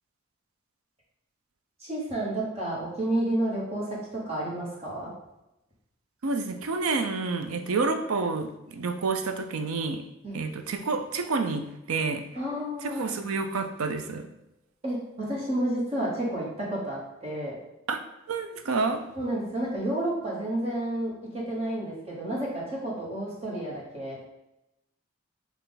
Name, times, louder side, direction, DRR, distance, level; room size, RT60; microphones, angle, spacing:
voice 1, 1.8-3.8 4.1-5.1 10.2-10.4 12.3-13.1 14.8-17.6 19.1-24.2, right 1 dB, 30° right, -5 dB, 1.2 m, -30 dB
voice 2, 6.2-10.0 10.3-12.2 12.8-14.3 17.9-18.0 18.3-19.0, right 4 dB, 80° right, 7 dB, 0.5 m, -29 dB
5.5 x 2.4 x 4.0 m, 0.91 s
head